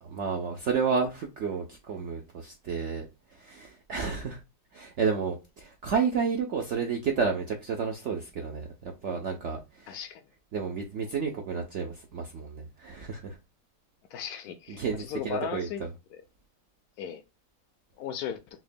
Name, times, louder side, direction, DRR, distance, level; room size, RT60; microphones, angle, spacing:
voice 1, 0.0-4.4 4.7-10.0 10.5-13.4 14.7-15.9, right 5 dB, 75° right, 0.6 m, -31 dB
voice 2, 9.9-10.2 14.1-15.8 16.1-16.2 17.0-17.2 18.0-18.4, left 8 dB, 75° left, 0.9 m, -36 dB
5.9 x 2.2 x 2.5 m
omnidirectional pair, 2.0 m